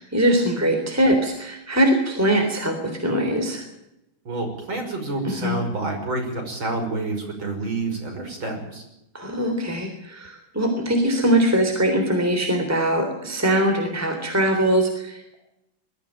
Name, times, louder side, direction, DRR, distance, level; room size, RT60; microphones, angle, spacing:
voice 1, 0.0-3.7 5.2-5.6 9.1-15.4, right 1 dB, 5° right, 4 dB, 3.4 m, -22 dB
voice 2, 4.2-8.8, right 2 dB, 75° right, 3 dB, 6.6 m, -28 dB
21.5 x 15.0 x 9.0 m, 0.87 s
omnidirectional pair, 2.2 m